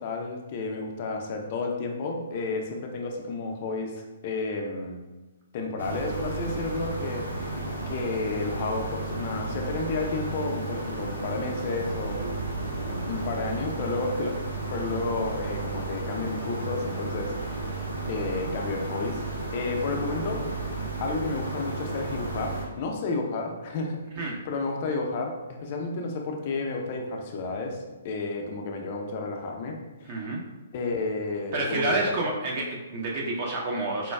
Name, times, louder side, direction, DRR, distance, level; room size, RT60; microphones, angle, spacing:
voice 1, 0.0-5.0 5.5-7.6 7.9-12.3 12.9-14.4 14.7-17.8 18.1-19.2 19.5-20.4 21.0-30.2 30.7-32.0 32.2-32.3, left 3 dB, 40° left, 2 dB, 0.4 m, -31 dB
sound 1, 5.8-22.6, right 2 dB, 90° right, 0.9 m, -33 dB
voice 2, 30.0-30.4 31.5-34.1, right 2 dB, 40° right, -2 dB, 0.4 m, -28 dB
4.2 x 2.2 x 2.2 m, 1.1 s
figure-of-eight pair, 125°, 0 cm